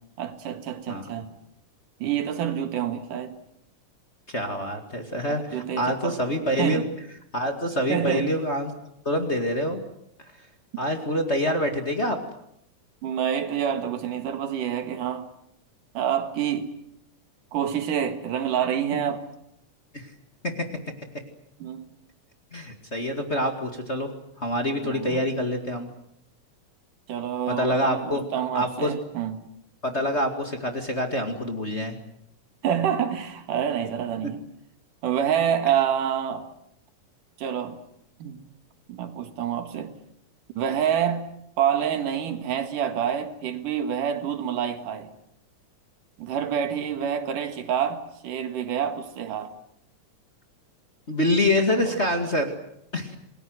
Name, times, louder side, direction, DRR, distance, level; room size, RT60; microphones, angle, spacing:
voice 1, 0.2-1.3 2.0-3.4 5.3-6.2 6.6-6.9 7.9-8.4 13.0-15.3 15.9-16.7 17.5-19.2 21.6-21.9 24.8-25.2 27.1-29.5 32.6-34.4 35.0-36.5 37.4-37.8 38.2-38.4 38.9-39.9 40.6-41.3 41.6-45.1 46.2-49.5 51.9-52.0, right 9 dB, 80° right, 3.3 m, -27 dB
voice 2, 4.3-6.8 7.3-8.7 9.1-9.8 10.8-12.2 19.9-20.1 20.4-20.5 22.5-24.1 24.4-25.9 27.5-28.2 28.5-28.9 29.8-32.0 51.1-52.5 52.9-53.2, left 1 dB, 25° left, 2.0 m, -26 dB
28.5 x 20.5 x 8.0 m
omnidirectional pair, 3.7 m